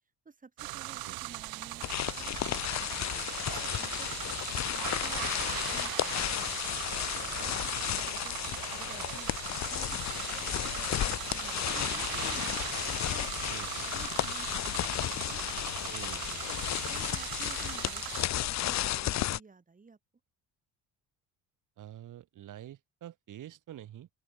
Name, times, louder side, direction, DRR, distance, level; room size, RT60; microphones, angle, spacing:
voice 1, 0.2-1.8 2.2-3.3 3.8-4.1 4.7-5.2 5.5-6.6 7.3-8.4 8.7-9.3 9.7-12.6 13.1-13.3 13.9-15.4 16.9-18.4 18.6-20.0, right 4 dB, 25° right, 7.7 m, -53 dB
sound 1, 0.6-18.3, right 17 dB, 90° right, 5.0 m, -39 dB
sound 2, 1.8-19.4, left 13 dB, 50° left, 0.8 m, -33 dB
voice 2, 13.5-13.9 15.9-16.7 21.8-24.1, right 12 dB, 60° right, 3.0 m, -47 dB
open air
cardioid pair, 130°, 35 cm